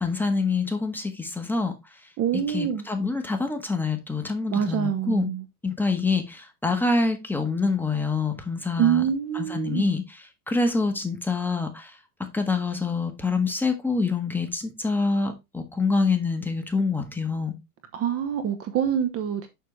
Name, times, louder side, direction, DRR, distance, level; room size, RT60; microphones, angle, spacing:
voice 1, 0.0-1.7 2.5-5.3 5.6-9.0 9.3-11.9 12.3-17.6, left 4 dB, 5° left, 1.4 m, -26 dB
voice 2, 2.2-2.8 4.5-5.4 8.8-9.9 17.9-19.5, right 9 dB, 30° right, 1.1 m, -25 dB
6.8 x 6.5 x 3.2 m
hypercardioid pair, 115°, 45 cm